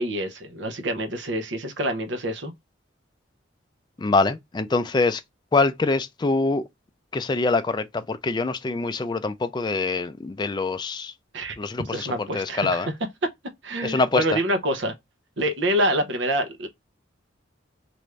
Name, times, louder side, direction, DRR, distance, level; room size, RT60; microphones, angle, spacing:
voice 1, 0.0-2.5 11.3-11.6 11.9-12.9 13.6-14.9 15.4-16.7, right 1 dB, 60° right, 0.7 m, -26 dB
voice 2, 4.0-5.2 5.5-6.6 7.1-11.1 11.6-12.1 12.3-12.9 13.8-14.4, left 3 dB, 20° left, 0.3 m, -24 dB
3.3 x 2.5 x 3.1 m
head